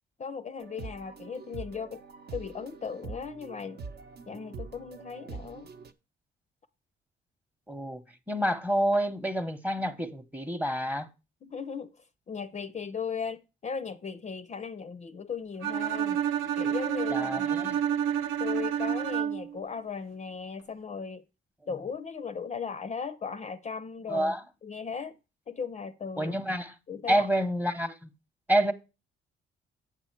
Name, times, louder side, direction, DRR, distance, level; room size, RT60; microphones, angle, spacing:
voice 1, 0.2-2.0 2.3-3.8 4.3-5.7 11.4-12.0 12.3-16.2 16.5-17.7 18.4-21.2 21.7-24.3 24.6-25.2 25.5-26.4 26.9-27.3, left 6 dB, 35° left, 0.5 m, -37 dB
sound 1, 0.6-5.9, right 4 dB, 55° right, 0.8 m, -44 dB
voice 2, 7.7-8.0 8.3-11.1 17.1-17.8 24.1-24.4 26.2-26.7 27.1-28.1 28.5-28.7, right 1 dB, 10° right, 0.9 m, -28 dB
Bowed string instrument, 15.6-19.6, right 9 dB, 80° right, 0.6 m, -29 dB
8.2 x 6.0 x 4.4 m
cardioid pair, 90°, 20 cm